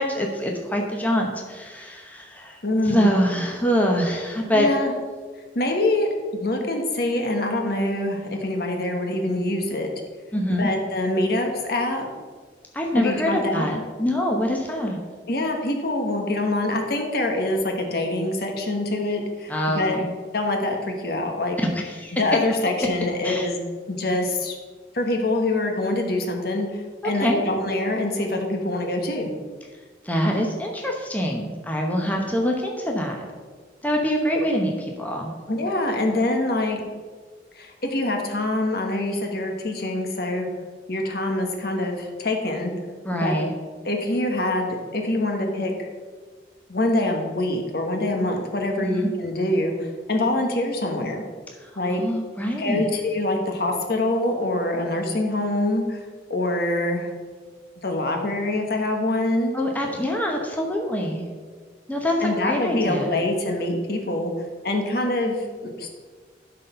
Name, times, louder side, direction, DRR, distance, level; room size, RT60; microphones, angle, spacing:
voice 1, 0.0-2.6 2.8-4.7 10.3-10.7 12.7-15.0 19.5-20.0 21.7-22.1 23.2-23.5 27.1-27.5 30.0-33.2 33.8-35.3 43.0-43.5 48.8-49.1 51.9-52.9 59.5-61.3 61.9-62.1 62.4-63.2, equal, 10° left, 0 dB, 0.9 m, -25 dB
voice 2, 2.6-3.1 4.5-4.9 5.5-9.9 10.5-12.1 12.9-13.8 15.3-21.6 22.1-23.6 23.9-24.5 24.9-29.3 35.5-36.8 37.5-40.5 40.9-42.7 43.1-43.3 43.8-45.9 46.7-51.2 51.8-52.0 52.6-56.0 56.3-57.1 57.8-59.5 62.2-64.3 64.6-65.9, left 1 dB, 60° left, 3 dB, 1.2 m, -25 dB
11.5 x 4.1 x 5.6 m, 1.5 s
head